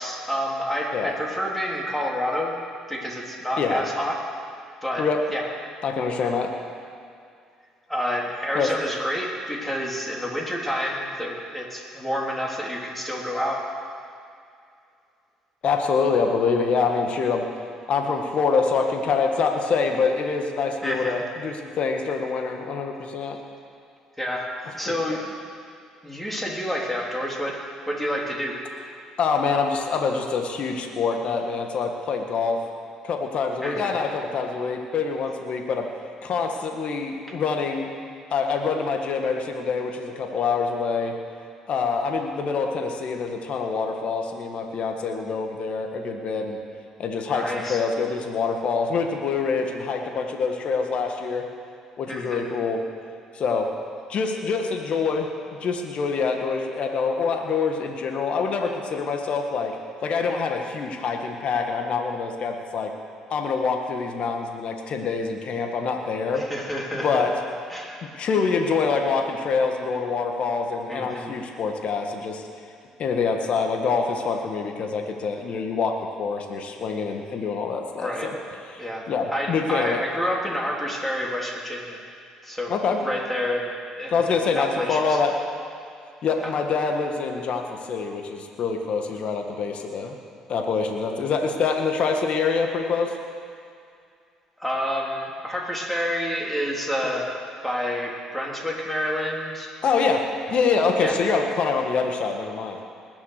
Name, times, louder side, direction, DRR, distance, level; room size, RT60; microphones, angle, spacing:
voice 1, 0.0-2.5 2.9-4.2 4.8-5.1 5.3-5.5 7.9-13.6 20.8-21.2 24.2-25.3 26.0-28.6 33.6-34.0 47.3-47.8 52.1-52.5 66.3-67.2 67.7-68.1 70.9-71.4 78.0-78.3 78.8-82.0 82.4-82.7 83.0-85.2 86.4-86.5 94.6-97.3 97.6-99.7 101.0-101.2, equal, 5° left, -2 dB, 3.6 m, -29 dB
voice 2, 5.8-6.5 8.5-8.7 15.6-17.5 17.9-23.4 24.8-25.0 29.2-32.6 33.0-35.9 36.2-37.9 38.3-41.1 41.7-46.6 47.0-51.5 52.0-52.8 53.3-53.7 54.1-59.8 60.0-62.9 63.3-66.5 67.0-67.4 68.0-72.4 73.0-78.3 78.7-80.0 82.7-83.0 84.1-85.3 86.2-90.2 90.5-93.1 97.0-97.2 99.8-102.8, left 5 dB, 55° left, 3 dB, 1.6 m, -25 dB
20.0 x 7.2 x 6.6 m, 2.4 s
hypercardioid pair, 60°, 2 cm